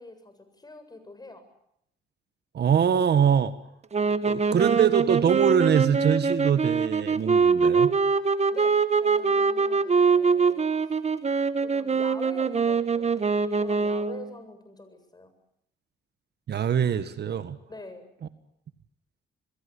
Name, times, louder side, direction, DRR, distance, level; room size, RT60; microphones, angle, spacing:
voice 1, 0.0-1.5 8.5-11.0 11.6-13.2 13.4-15.3 17.7-18.1, left 2 dB, 20° left, 8 dB, 7.7 m, -45 dB
voice 2, 2.5-3.5 4.2-7.9 16.5-17.6, right 8 dB, 55° right, 12 dB, 1.7 m, -23 dB
sound 1, 3.9-14.3, right 5 dB, 35° right, 1.6 m, -23 dB
28.0 x 21.5 x 8.5 m, 0.76 s
cardioid pair, 90°, 20 cm